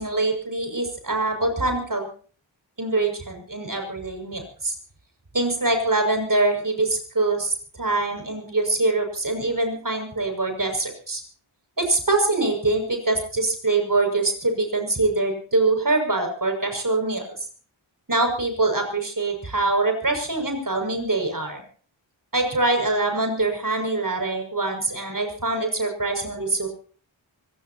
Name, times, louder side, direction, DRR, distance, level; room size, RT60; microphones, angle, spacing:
voice 1, 0.0-2.1 2.8-4.8 5.3-11.2 11.8-17.3 18.1-21.6 22.3-26.7, right 2 dB, 45° right, 4 dB, 6.6 m, -24 dB
25.0 x 18.0 x 3.0 m, 0.43 s
wide cardioid pair, 50°, 47 cm